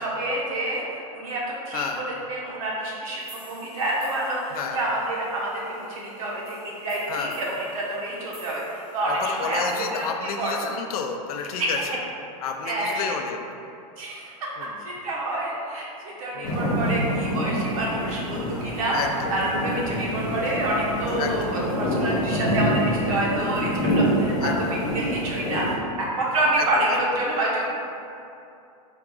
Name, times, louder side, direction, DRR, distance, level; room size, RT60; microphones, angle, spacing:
voice 1, 0.0-10.1 10.4-10.5 11.6-11.7 12.6-13.1 14.0-14.5 14.8-15.8 16.2-19.0 19.3-21.4 21.8-25.7 26.0-27.7, right 1 dB, 65° right, -4 dB, 0.9 m, -28 dB
voice 2, 1.7-2.0 4.5-4.8 7.1-7.4 9.1-12.0 12.4-13.4 14.6-14.7 16.3-16.6 18.9-19.3 21.2-21.6 24.4-24.8 26.6-27.0, left 6 dB, 75° left, 5 dB, 0.4 m, -31 dB
sound 1, 3.2-10.0, right 2 dB, 15° right, 0.7 m, -52 dB
sound 2, 16.4-25.7, equal, 60° left, 0.9 m, -26 dB
3.8 x 2.3 x 3.7 m, 2.6 s
supercardioid pair, 170°, 19 cm